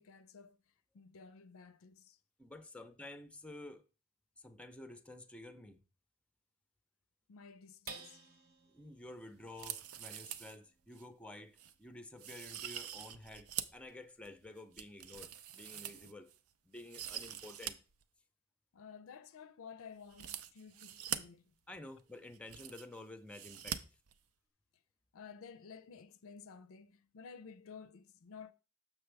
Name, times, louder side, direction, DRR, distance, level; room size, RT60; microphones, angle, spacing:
voice 1, 0.0-2.2 7.3-8.2 18.7-21.5 25.1-28.5, left 6 dB, 70° left, 0.4 m, -53 dB
voice 2, 2.4-3.8 4.4-5.8 8.7-16.3 16.6-17.8 21.7-23.8, left 2 dB, 5° left, 0.5 m, -51 dB
sound 1, 7.9-14.6 15.0-15.1 15.5-16.0, right 4 dB, 45° right, 0.8 m, -57 dB
sound 2, 9.5-10.6 10.9-11.0 11.6-11.7 12.2-13.8 14.3-16.4 16.8-17.7 18.0-18.1 20.1-21.2 22.0-22.1 22.3-23.0 23.3-23.8 24.1-24.2, right 10 dB, 85° right, 0.5 m, -44 dB
6.9 x 5.9 x 3.3 m
head